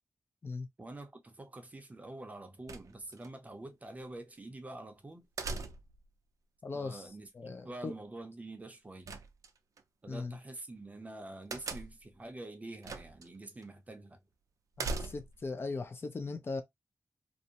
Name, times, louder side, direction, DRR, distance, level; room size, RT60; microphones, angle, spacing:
voice 1, 0.8-5.3 6.7-9.1 10.0-14.2, right 2 dB, 25° right, 0.6 m, -46 dB
sound 1, 2.7-3.3 5.4-6.1 9.1-9.8 11.5-12.1 12.8-13.3 13.6-13.7 14.8-15.5, right 3 dB, 80° right, 0.4 m, -39 dB
voice 2, 6.6-7.9 10.1-10.4 14.8-16.6, left 3 dB, 45° left, 0.4 m, -39 dB
2.6 x 2.0 x 2.7 m
wide cardioid pair, 125°, 6 cm